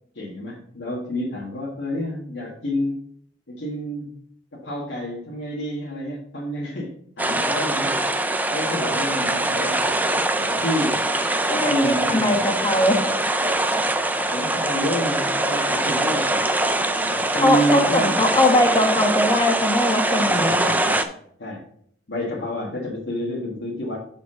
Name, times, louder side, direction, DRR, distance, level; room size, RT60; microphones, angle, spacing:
voice 1, 0.2-3.0 3.5-4.2 4.5-8.0 8.5-9.9 10.4-11.0 11.5-12.3 14.1-16.4 17.0-18.2 20.2-21.1 21.4-21.6 22.1-24.0, equal, 80° left, -4 dB, 1.7 m, -29 dB
sound 1, 7.2-21.0, right 2 dB, 10° right, 0.5 m, -23 dB
voice 2, 11.5-13.0 17.4-20.8, left 1 dB, 20° left, 4 dB, 1.2 m, -21 dB
6.8 x 5.3 x 4.8 m, 0.63 s
head